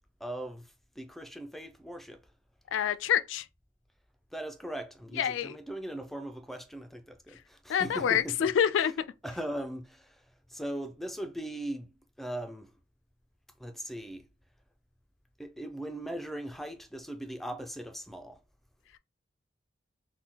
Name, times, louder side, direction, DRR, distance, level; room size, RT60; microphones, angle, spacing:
voice 1, 0.2-0.6 1.0-2.2 4.3-8.5 8.8-8.9 9.2-10.2 10.5-11.9 12.2-12.7 13.6-14.2 15.4-18.4, right 1 dB, ahead, 0.3 m, -39 dB
voice 2, 2.7-3.4 5.2-5.6 7.7-8.9, left 9 dB, 85° left, 0.3 m, -27 dB
3.5 x 2.2 x 2.9 m
head